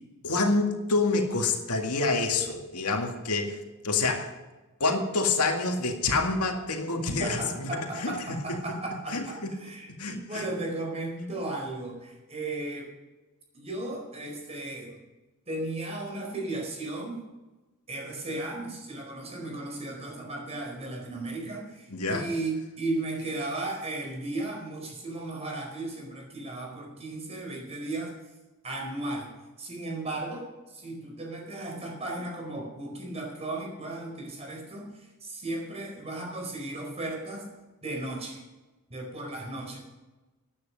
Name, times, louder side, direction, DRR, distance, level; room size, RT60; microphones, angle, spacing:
voice 1, 0.2-3.6 3.8-4.3 4.8-7.7 8.0-8.1 9.1-9.2 10.0-10.4 21.9-22.3, left 3 dB, 85° left, 3 dB, 2.0 m, -27 dB
voice 2, 6.9-12.9 13.5-15.0 15.5-17.2 17.9-28.1 28.6-29.3 29.6-37.5 37.8-38.4 38.9-39.8, right 2 dB, 30° right, 0 dB, 4.5 m, -35 dB
14.5 x 9.9 x 5.3 m, 1.1 s
head